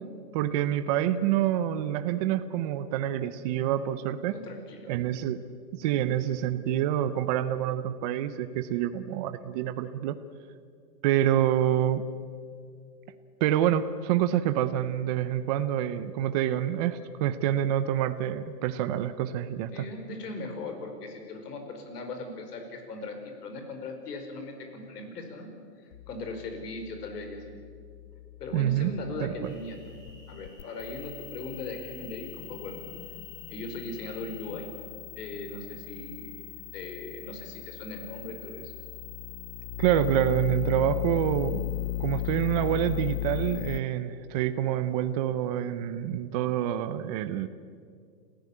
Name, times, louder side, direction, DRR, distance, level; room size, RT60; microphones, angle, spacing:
voice 1, 0.3-4.4 4.9-5.4 5.7-10.2 11.0-12.0 13.4-19.8 28.5-28.9 29.2-29.5 39.8-41.7 42.0-47.5, right 11 dB, 25° right, 11 dB, 0.6 m, -27 dB
voice 2, 4.3-4.9 19.7-25.5 26.1-27.6 28.4-30.0 30.3-32.8 33.5-34.7 35.2-38.7, left 2 dB, 70° left, 5 dB, 5.0 m, -39 dB
sound 1, 25.9-43.8, left 14 dB, 45° left, 0.7 m, -37 dB
sound 2, 29.4-34.5, equal, 10° left, 7.8 m, -56 dB
28.0 x 15.0 x 8.5 m, 2.2 s
hypercardioid pair, 145°, 49 cm